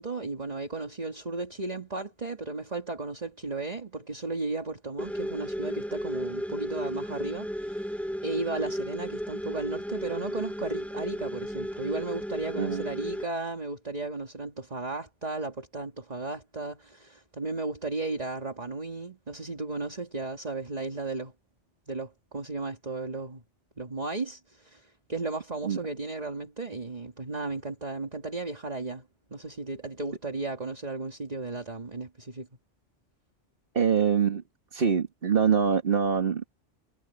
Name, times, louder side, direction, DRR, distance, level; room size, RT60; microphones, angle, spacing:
voice 1, 0.0-21.3 21.9-23.4 23.8-29.0 29.3-32.5, right 3 dB, 35° right, 2.3 m, -35 dB
sound 1, 5.0-13.2, equal, ahead, 2.4 m, -34 dB
voice 2, 12.6-12.9 25.6-25.8 33.7-34.4 34.7-36.5, right 6 dB, 50° right, 1.8 m, -24 dB
omnidirectional pair, 1.2 m